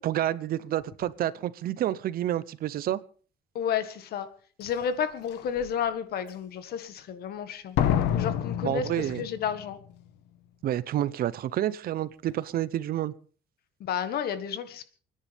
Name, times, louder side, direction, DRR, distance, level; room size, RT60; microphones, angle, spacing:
voice 1, 0.0-3.0 8.6-9.3 10.6-13.1, right 12 dB, 60° right, 0.8 m, -29 dB
voice 2, 3.6-4.3 4.6-7.8 8.1-9.8 13.8-14.8, left 8 dB, 65° left, 1.8 m, -31 dB
Slam, 4.6-4.7 5.3-5.7 7.8-9.6 9.9-10.0, left 10 dB, 90° left, 1.3 m, -28 dB
29.0 x 10.0 x 3.5 m
cardioid pair, 110°, 17 cm